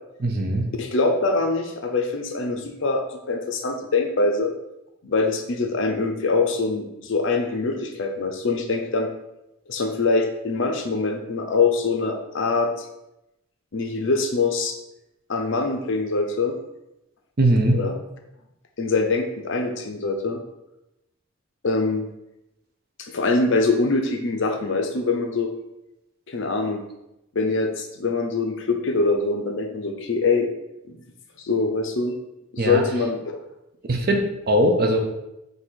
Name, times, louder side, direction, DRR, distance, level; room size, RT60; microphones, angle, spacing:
voice 1, 0.2-0.7 17.4-17.8 32.6-32.8 33.9-35.0, right 1 dB, 45° right, 3 dB, 0.6 m, -20 dB
voice 2, 0.8-4.5 5.0-9.1 9.7-12.9 13.7-14.7 15.3-16.5 17.7-17.9 18.8-20.4 21.6-22.0 23.0-25.5 26.3-26.8 27.3-30.5 30.9-31.0 31.4-32.1 32.6-33.2, left 3 dB, 60° left, 4 dB, 0.6 m, -23 dB
3.9 x 2.7 x 4.4 m, 0.90 s
head